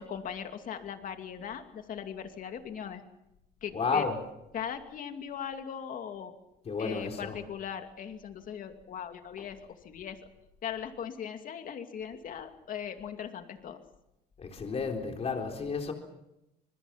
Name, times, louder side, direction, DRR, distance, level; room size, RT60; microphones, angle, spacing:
voice 1, 0.0-3.0 3.6-4.0 4.5-6.3 6.8-9.6 9.8-10.2 10.6-13.8, left 8 dB, 55° left, 2.6 m, -39 dB
voice 2, 3.7-4.2 6.6-7.4 9.4-9.5 14.4-15.9, left 5 dB, 40° left, 3.9 m, -32 dB
26.5 x 21.5 x 5.9 m
cardioid pair, 110°, 17 cm